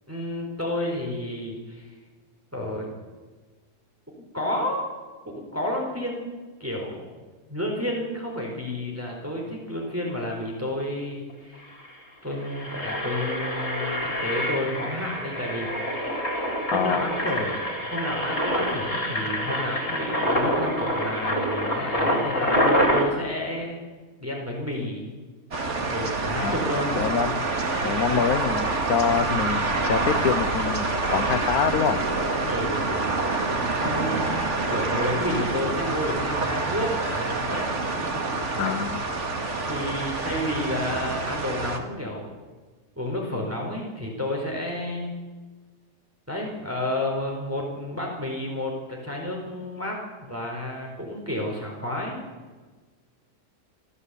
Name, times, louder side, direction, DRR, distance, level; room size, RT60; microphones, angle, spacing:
voice 1, 0.1-1.9 2.5-2.9 4.3-4.9 5.2-6.3 6.6-7.1 7.5-11.7 12.2-15.9 16.7-23.8 24.2-25.1 25.9-26.9 29.1-29.3 32.5-33.2 33.7-37.7 38.1-38.2 39.6-42.2 43.0-45.1 46.3-52.2, left 1 dB, 10° right, -1 dB, 4.3 m, -31 dB
Engine, 11.3-11.4 11.6-11.9 12.3-23.0, equal, 60° left, 4.7 m, -26 dB
voice 2, 16.7-17.1 26.4-26.6 27.0-27.5 27.8-30.9 31.1-32.0 38.6-39.0, left 7 dB, 85° left, 8 dB, 1.3 m, -25 dB
sound 1, 25.5-41.8, right 3 dB, 55° right, 2.4 m, -27 dB
27.0 x 14.0 x 8.4 m, 1.3 s
omnidirectional pair, 1.5 m